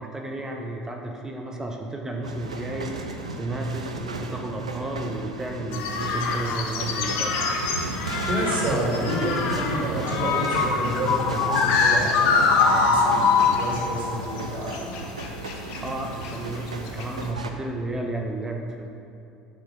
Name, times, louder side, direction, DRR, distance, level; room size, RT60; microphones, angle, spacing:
voice 1, 0.0-2.9 3.4-7.3 15.8-18.9, right 2 dB, 15° right, 1 dB, 0.9 m, -32 dB
sound 1, 2.2-17.5, right 3 dB, 85° right, 0.5 m, -34 dB
sound 2, 5.7-14.4 14.7-15.8 16.2-16.6 16.9-17.2, left 5 dB, 60° left, 0.9 m, -24 dB
voice 2, 8.3-14.9, equal, 50° right, -3 dB, 2.2 m, -29 dB
6.7 x 6.5 x 5.6 m, 2.6 s
figure-of-eight pair, 65°, 3 cm